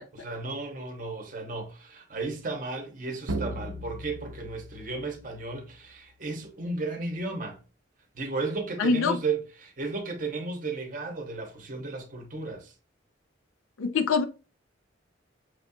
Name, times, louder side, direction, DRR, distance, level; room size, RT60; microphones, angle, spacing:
voice 1, 0.1-7.6 8.1-12.7, right 3 dB, 40° right, 0.8 m, -34 dB
sound 1, 3.3-5.9, right 1 dB, 85° right, 0.6 m, -37 dB
voice 2, 8.8-9.2 13.8-14.3, left 4 dB, 85° left, 0.4 m, -24 dB
6.1 x 2.3 x 2.6 m
head